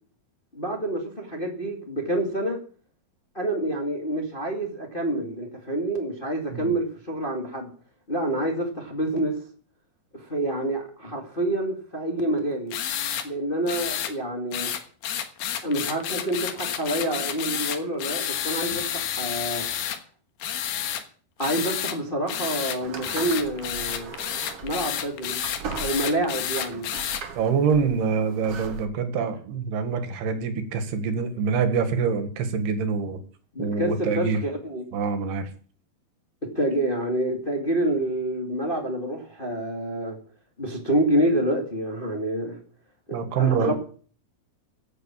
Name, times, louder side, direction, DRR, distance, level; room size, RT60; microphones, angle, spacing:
voice 1, 0.5-2.6 3.3-7.7 8.1-9.4 10.1-12.8 13.2-14.7 15.6-19.7 21.4-24.1 24.6-25.4 25.8-26.9 33.5-34.8 36.4-40.2 40.6-42.6 43.1-43.7, right 1 dB, 20° left, 1.7 m, -27 dB
sound 1, 12.7-13.3 13.7-14.1 14.5-20.0 20.4-21.0 21.4-22.0 22.3-27.2, left 10 dB, 80° left, 3.3 m, -30 dB
sound 2, 22.8-28.9, right 6 dB, 50° right, 1.9 m, -39 dB
voice 2, 27.4-33.2 33.6-34.4 34.9-35.5 43.1-43.7, right 5 dB, 85° right, 3.8 m, -25 dB
16.0 x 7.9 x 7.4 m
omnidirectional pair, 4.5 m